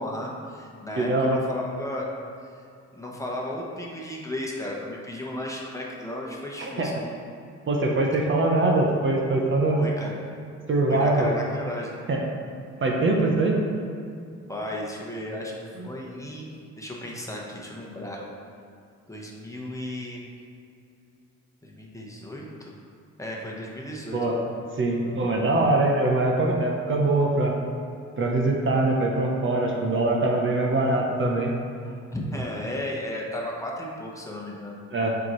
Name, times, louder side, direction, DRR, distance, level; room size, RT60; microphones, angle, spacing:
voice 1, 0.0-2.1 2.9-7.1 9.7-10.2 10.9-12.0 14.5-15.5 15.8-16.5 16.8-18.2 19.1-20.2 21.6-22.7 23.2-24.5 25.0-25.3 32.1-34.8, left 1 dB, 10° left, -3 dB, 1.0 m, -34 dB
voice 2, 1.0-1.4 6.6-6.9 7.7-9.8 10.7-11.3 12.1-12.2 12.8-13.6 24.1-24.4 24.8-27.6 28.2-31.5 34.9-35.2, right 2 dB, 40° right, -1 dB, 0.8 m, -23 dB
6.9 x 4.6 x 3.1 m, 2.5 s
cardioid pair, 90°, 30 cm